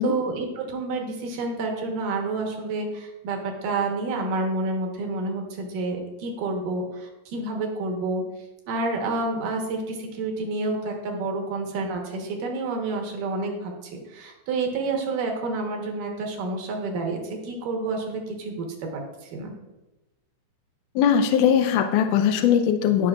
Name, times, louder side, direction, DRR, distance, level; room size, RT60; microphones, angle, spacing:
voice 1, 0.0-8.2 8.7-19.5, right 3 dB, 70° right, 1 dB, 2.7 m, -29 dB
voice 2, 21.0-23.1, left 8 dB, 80° left, 5 dB, 1.9 m, -20 dB
17.5 x 6.1 x 2.4 m, 1.0 s
omnidirectional pair, 4.3 m